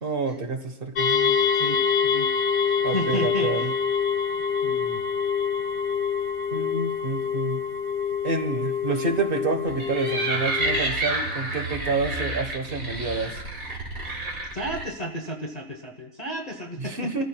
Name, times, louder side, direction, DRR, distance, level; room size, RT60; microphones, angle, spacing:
voice 1, 0.0-1.4 2.8-3.7 6.5-7.6 8.2-13.4 16.8-17.2, right 3 dB, 40° right, 6 dB, 1.3 m, -28 dB
sound 1, 1.0-10.8, left 6 dB, 75° left, 1.3 m, -26 dB
voice 2, 1.5-2.3 2.6-3.7 4.6-5.0 14.5-17.1, equal, 30° left, 0 dB, 1.0 m, -33 dB
sound 2, 9.7-14.8, right 2 dB, 70° right, 2.7 m, -29 dB
28.0 x 14.5 x 2.3 m, 0.99 s
omnidirectional pair, 1.5 m